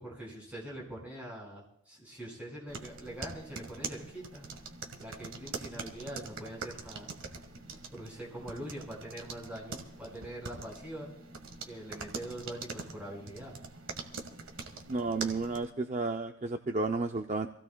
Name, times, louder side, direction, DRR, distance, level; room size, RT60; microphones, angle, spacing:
voice 1, 0.0-4.5 5.0-7.1 7.9-11.1 11.7-13.6, right 1 dB, 5° right, -4 dB, 5.1 m, -43 dB
sound 1, 2.7-15.7, right 4 dB, 75° right, 1.6 m, -44 dB
voice 2, 14.9-17.5, right 3 dB, 35° right, 5 dB, 0.5 m, -32 dB
26.0 x 16.0 x 2.3 m, 0.71 s
head